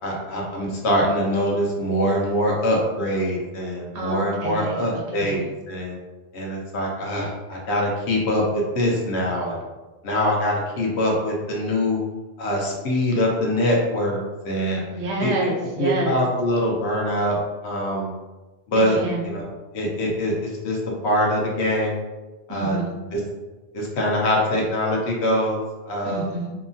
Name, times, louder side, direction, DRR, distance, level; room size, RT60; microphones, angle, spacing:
voice 1, 0.0-5.4 5.7-5.9 6.3-9.6 10.0-12.0 12.4-14.2 14.4-14.8 15.2-15.3 15.8-18.1 18.7-19.0 19.2-19.5 19.7-20.8 21.0-21.9 22.5-22.8 23.1-23.2 23.7-25.6 25.9-26.2, equal, 75° left, -2 dB, 1.0 m, -23 dB
voice 2, 3.9-4.8 5.2-5.5 14.9-16.2 18.9-19.3 22.5-23.0 26.0-26.5, right 2 dB, 90° right, -1 dB, 0.9 m, -28 dB
2.8 x 2.3 x 2.5 m, 1.2 s
omnidirectional pair, 1.1 m